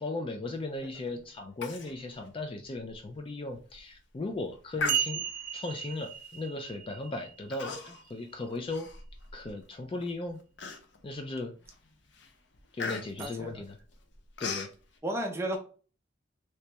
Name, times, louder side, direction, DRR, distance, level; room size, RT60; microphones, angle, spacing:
voice 1, 0.0-5.2 5.5-7.7 8.1-8.9 9.3-10.4 11.0-11.5 12.7-13.8 14.4-14.7, left 2 dB, 30° left, 5 dB, 0.3 m, -37 dB
Human voice, 1.6-1.9 2.3-2.4 2.9-3.0 3.5-3.8 4.8-5.5 6.2-6.5 7.5-8.1 8.5-9.5 10.0-10.1 10.6-11.2 11.6-11.9 12.1-14.7, left 4 dB, 70° left, 0.6 m, -38 dB
sound 1, 4.0-4.1 4.9-8.5 13.2-13.4, right 9 dB, 45° right, 0.4 m, -36 dB
voice 2, 13.2-13.6 15.0-15.6, right 1 dB, 15° right, 2 dB, 0.7 m, -34 dB
3.1 x 2.8 x 3.3 m, 0.38 s
head